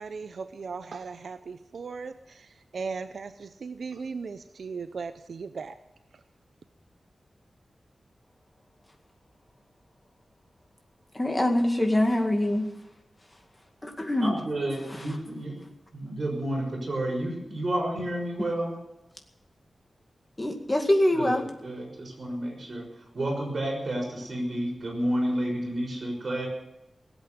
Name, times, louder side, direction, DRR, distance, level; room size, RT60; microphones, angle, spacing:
voice 1, 0.0-5.8 6.1-6.2, right 5 dB, 75° right, 10 dB, 0.6 m, -37 dB
voice 2, 11.1-12.7 13.3-13.4 13.8-14.4 20.4-21.4, left 1 dB, 20° left, 3 dB, 2.2 m, -24 dB
voice 3, 14.2-15.7 15.9-18.7 21.1-26.5, right 1 dB, 50° right, 1 dB, 6.2 m, -31 dB
18.0 x 8.2 x 9.4 m, 0.87 s
wide cardioid pair, 135°, 0 cm